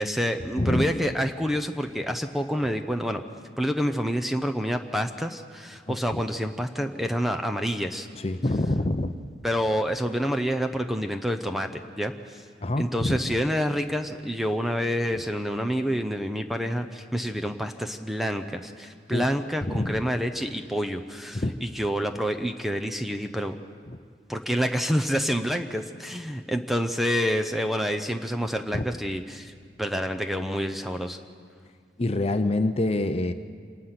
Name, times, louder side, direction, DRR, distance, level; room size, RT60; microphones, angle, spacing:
voice 1, 0.0-3.2 3.6-8.1 9.4-12.4 12.8-23.6 24.3-29.5 29.8-31.2, equal, ahead, 7 dB, 0.7 m, -28 dB
voice 2, 0.6-1.0 5.9-6.2 8.1-9.1 12.6-13.4 15.1-15.2 19.1-19.3 19.6-20.0 21.3-21.6 23.9-24.0 28.7-28.9 32.0-33.3, left 2 dB, 35° left, 9 dB, 0.7 m, -26 dB
27.0 x 19.5 x 5.9 m, 2.1 s
head